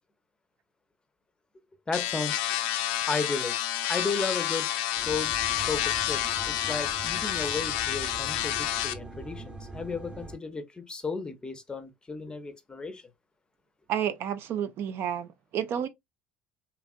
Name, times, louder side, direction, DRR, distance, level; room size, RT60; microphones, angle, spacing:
sound 1, 1.9-8.9, left 12 dB, 75° left, 0.4 m, -29 dB
voice 1, 1.9-2.4 3.1-3.5 3.9-4.7 5.1-5.3 5.7-6.2 6.5-13.0, left 4 dB, 15° left, 0.6 m, -34 dB
sound 2, 5.0-10.4, right 2 dB, 15° right, 0.9 m, -42 dB
voice 2, 13.9-15.9, right 9 dB, 50° right, 0.4 m, -30 dB
2.8 x 2.4 x 2.4 m
hypercardioid pair, 80°, 5 cm